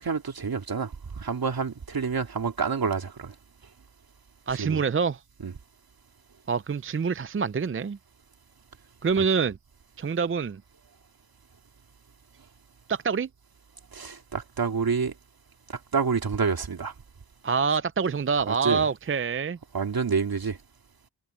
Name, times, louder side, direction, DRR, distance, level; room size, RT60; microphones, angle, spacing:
voice 1, 0.0-3.3 4.6-4.8 5.4-5.5 9.2-9.3 13.9-15.1 15.9-16.9 18.5-18.9 19.7-20.6, right 5 dB, 65° right, 2.8 m, -28 dB
voice 2, 4.5-5.2 6.5-8.0 9.0-9.6 10.0-10.6 12.9-13.3 17.4-19.6, right 5 dB, 35° right, 0.6 m, -26 dB
cardioid pair, 55°, 39 cm